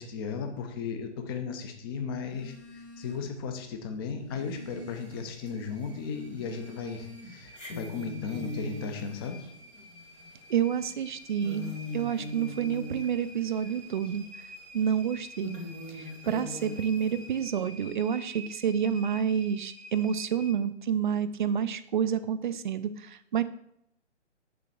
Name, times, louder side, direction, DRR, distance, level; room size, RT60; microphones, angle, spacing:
voice 1, 0.0-9.4, left 5 dB, 20° left, 6 dB, 0.6 m, -36 dB
Telephone, 2.2-3.5 3.8-5.5 6.1-7.6, left 1 dB, 65° left, 2.3 m, -48 dB
sound 1, 4.3-20.5, equal, 60° right, 1.2 m, -50 dB
sound 2, 4.9-5.0 5.5-6.2 6.5-6.6 7.5-13.8 14.1-14.2 14.8-14.9 15.4-17.4, left 2 dB, 85° left, 2.4 m, -41 dB
voice 2, 10.5-14.4 14.7-15.6 15.9-23.4, right 8 dB, 45° right, 13 dB, 0.5 m, -29 dB
7.1 x 3.8 x 6.0 m, 0.75 s
figure-of-eight pair, 130°, 36 cm